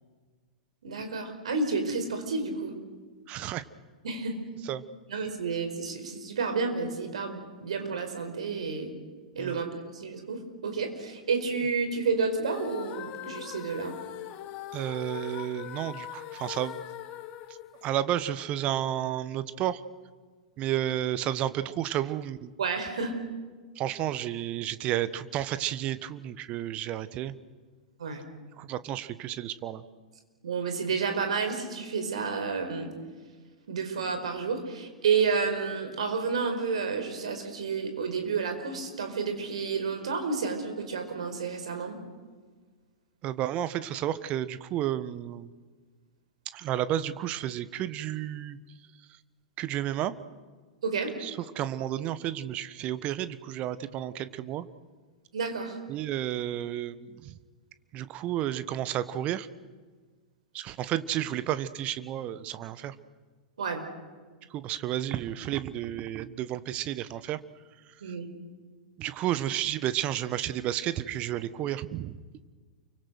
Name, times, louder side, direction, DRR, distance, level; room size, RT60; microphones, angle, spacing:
voice 1, 0.8-2.7 4.0-4.3 5.1-8.9 9.3-14.0 22.6-23.1 28.0-28.2 30.4-32.9 33.7-42.0 50.8-51.1 55.3-55.8 63.6-63.8 68.0-68.3, right 5 dB, 65° right, 6 dB, 4.8 m, -30 dB
voice 2, 3.3-3.6 4.7-4.8 9.4-9.6 14.7-16.8 17.8-19.8 20.6-22.5 23.8-27.3 28.6-29.8 43.2-45.5 46.5-48.6 49.6-50.1 51.2-54.7 55.9-57.3 57.9-59.5 60.5-62.9 64.5-67.4 69.0-72.2, right 12 dB, 35° right, 14 dB, 1.3 m, -31 dB
sound 1, 12.4-18.5, left 13 dB, 40° left, 1.5 m, -41 dB
29.0 x 24.0 x 6.4 m, 1.4 s
figure-of-eight pair, 95°, 4 cm